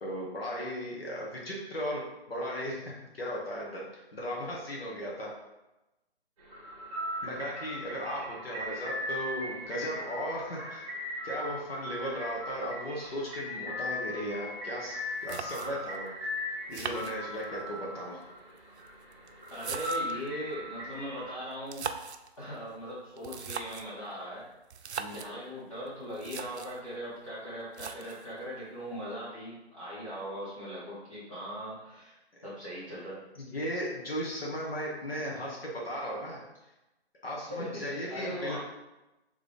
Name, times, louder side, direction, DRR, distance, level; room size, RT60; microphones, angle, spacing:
voice 1, 0.0-2.0 2.3-5.3 7.2-10.8 11.2-16.1 16.7-18.2 25.0-25.3 33.4-36.4 37.2-38.6, equal, 65° left, -3 dB, 1.4 m, -36 dB
sound 1, 6.4-21.3, left 1 dB, 35° right, 1.5 m, -39 dB
sound 2, 14.9-15.0 15.3-16.0 16.7-17.7 18.6-20.3 21.5-22.3 23.2-24.0 24.7-25.3 25.9-26.0 26.1-26.8 27.7-28.3, right 6 dB, 90° right, 0.5 m, -40 dB
voice 2, 19.5-21.9 22.4-24.4 25.1-32.2 32.4-33.2 37.5-37.8 38.1-38.6, equal, 30° left, -9 dB, 1.4 m, -39 dB
4.1 x 3.4 x 3.4 m, 0.99 s
hypercardioid pair, 175°, 32 cm